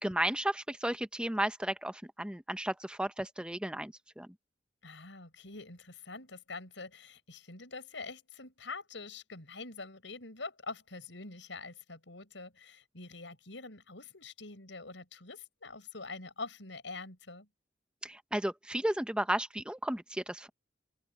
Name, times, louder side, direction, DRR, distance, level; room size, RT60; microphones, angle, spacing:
voice 1, 0.0-4.3 18.0-20.5, right 1 dB, 5° right, 0.8 m, -34 dB
voice 2, 4.8-17.5, left 3 dB, 90° left, 5.5 m, -45 dB
head